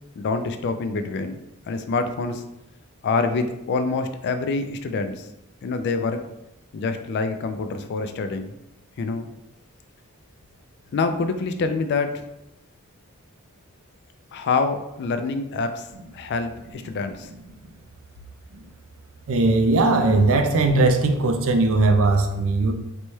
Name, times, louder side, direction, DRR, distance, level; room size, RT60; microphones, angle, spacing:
voice 1, 0.2-1.4 1.7-2.4 3.0-5.3 5.6-6.2 6.7-8.6 9.0-9.3 10.9-12.2 14.3-15.9 16.1-17.3, left 4 dB, 50° left, 8 dB, 0.3 m, -26 dB
voice 2, 19.3-22.7, right 2 dB, 65° right, 6 dB, 0.4 m, -19 dB
4.1 x 2.2 x 3.1 m, 0.86 s
head